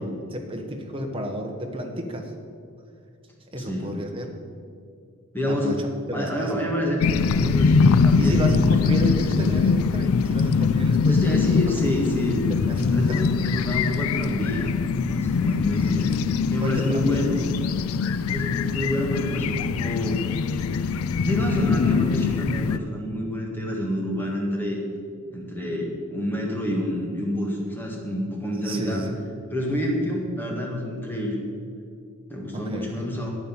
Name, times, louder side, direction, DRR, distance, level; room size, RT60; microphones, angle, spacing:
voice 1, 0.0-2.3 3.5-4.3 5.5-6.7 8.2-11.6 11.9-12.0 12.5-13.4 16.0-16.3 16.6-17.3 28.6-29.1 32.5-33.1, equal, 25° right, 3 dB, 1.2 m, -31 dB
voice 2, 5.3-5.7 6.1-9.2 11.0-12.5 12.9-14.8 15.0-16.2 16.5-17.4 18.3-20.2 21.2-24.8 25.3-29.1 29.5-31.4 32.3-33.4, left 1 dB, 10° left, -1 dB, 1.8 m, -28 dB
sound 1, 7.0-22.8, left 5 dB, 75° left, 0.4 m, -22 dB
10.5 x 8.9 x 7.3 m, 2.3 s
head